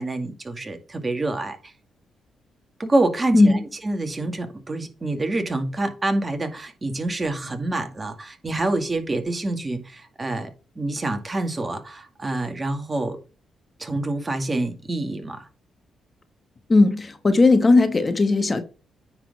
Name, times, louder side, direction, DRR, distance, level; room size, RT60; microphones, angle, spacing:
voice 1, 0.0-1.6 2.8-3.6 3.8-10.5 10.8-13.2 13.8-15.5, right 2 dB, 30° right, 2.0 m, -26 dB
voice 2, 3.3-3.6 16.7-18.6, left 3 dB, 35° left, 1.3 m, -17 dB
9.4 x 4.1 x 5.4 m
supercardioid pair, 60°, 0 cm